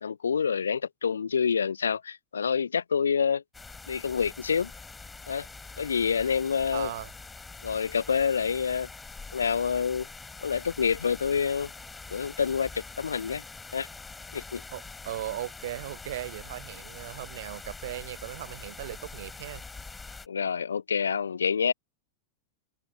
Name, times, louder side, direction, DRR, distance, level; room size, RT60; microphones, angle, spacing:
voice 1, 0.0-3.4 3.9-4.7 5.3-5.5 5.8-6.9 7.6-8.9 9.3-10.1 10.4-11.7 12.1-13.4 13.7-13.9 14.3-14.6 20.3-21.7, left 6 dB, 70° left, 0.6 m, -27 dB
sound 1, 3.5-20.3, left 4 dB, 10° left, 4.2 m, -44 dB
voice 2, 6.7-7.1 14.7-19.6, right 13 dB, 55° right, 0.6 m, -38 dB
figure-of-eight pair, 90°, 0 cm